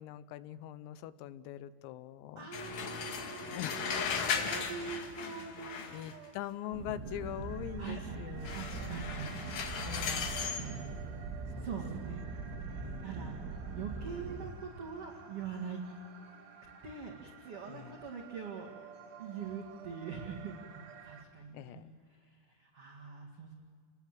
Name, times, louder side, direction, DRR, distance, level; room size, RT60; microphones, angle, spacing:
voice 1, 0.0-2.5 3.4-4.1 4.4-4.5 5.2-8.9 9.9-10.4 11.6-11.7 12.8-13.1 17.7-18.0 21.5-21.9, left 11 dB, 85° left, 14 dB, 3.5 m, -43 dB
voice 2, 2.3-6.3 7.8-8.0 8.4-9.3 10.0-10.9 11.6-12.3 12.7-13.3 13.7-15.8 16.8-18.7 19.2-23.5, right 6 dB, 50° right, 0 dB, 1.7 m, -44 dB
sound 1, 2.5-6.3 8.4-10.7, left 6 dB, 55° left, 3.0 m, -37 dB
sound 2, 6.7-14.5, right 4 dB, 70° right, 4.1 m, -42 dB
sound 3, 7.0-21.3, right 6 dB, 85° right, 5.0 m, -53 dB
29.5 x 20.0 x 7.6 m, 2.2 s
omnidirectional pair, 6.0 m